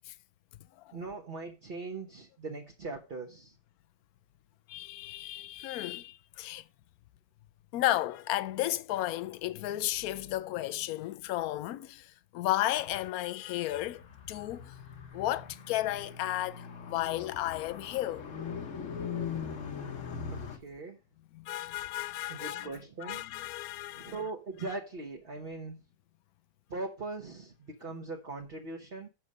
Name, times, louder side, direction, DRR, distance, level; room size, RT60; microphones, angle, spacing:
voice 1, 0.9-3.6 20.3-21.0 22.3-23.2 23.9-25.8 26.7-29.1, right 3 dB, 40° right, 1.3 m, -40 dB
voice 2, 4.7-6.6 7.7-14.7 15.1-18.2 18.9-19.0 21.3-22.7 23.0-24.2, left 15 dB, 75° left, 1.0 m, -33 dB
Car, 13.7-20.6, left 6 dB, 55° left, 1.4 m, -41 dB
7.5 x 6.4 x 5.4 m
omnidirectional pair, 1.7 m